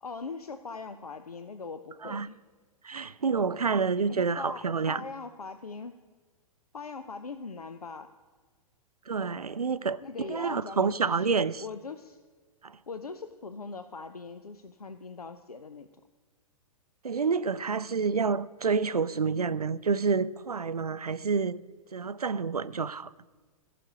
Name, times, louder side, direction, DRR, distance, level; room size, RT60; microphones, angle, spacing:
voice 1, 0.0-2.4 4.1-6.0 6.7-8.1 10.0-12.2 12.9-15.9, left 4 dB, 85° left, 0.5 m, -41 dB
voice 2, 2.8-5.0 9.1-10.0 10.3-11.6 12.6-12.8 17.0-21.6 21.9-23.1, right 5 dB, 85° right, 0.4 m, -28 dB
14.0 x 5.9 x 5.0 m
figure-of-eight pair, 110°, 19 cm